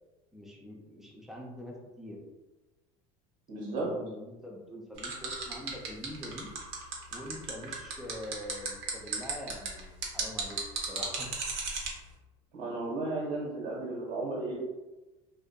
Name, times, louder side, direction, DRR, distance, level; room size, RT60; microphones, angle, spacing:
voice 1, 0.3-2.2 3.7-6.5 7.1-10.6 10.9-11.3, left 1 dB, ahead, -2 dB, 0.5 m, -44 dB
voice 2, 3.5-3.9 12.5-14.6, right 2 dB, 80° right, -5 dB, 1.2 m, -34 dB
sound 1, 5.0-11.9, right 5 dB, 65° right, 0.7 m, -34 dB
2.5 x 2.5 x 2.2 m, 1.1 s
supercardioid pair, 115°, 17 cm